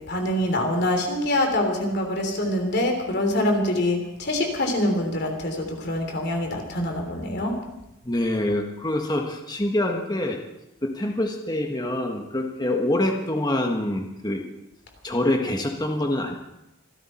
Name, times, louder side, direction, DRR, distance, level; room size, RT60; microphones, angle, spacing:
voice 1, 0.1-7.5, left 1 dB, 50° left, 3 dB, 3.3 m, -25 dB
voice 2, 8.0-10.4 10.8-14.4 15.0-16.3, left 1 dB, 20° left, 2 dB, 1.4 m, -25 dB
25.5 x 12.5 x 4.4 m, 0.90 s
head